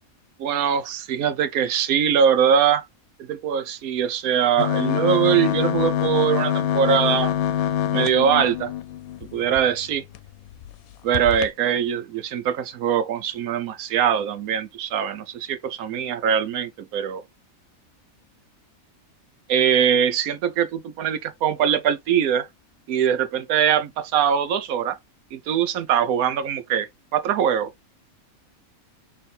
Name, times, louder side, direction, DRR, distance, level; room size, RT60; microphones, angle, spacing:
voice 1, 0.4-2.9 3.2-7.3 7.9-8.7 9.3-10.0 11.0-17.2 19.5-22.5 22.9-25.0 25.3-26.9 27.1-27.7, right 8 dB, 85° right, 1.2 m, -22 dB
sound 1, 4.6-9.6 10.1-10.2 10.5-10.7 11.1-11.5, left 10 dB, 85° left, 1.0 m, -25 dB
4.3 x 3.1 x 3.2 m
omnidirectional pair, 1.5 m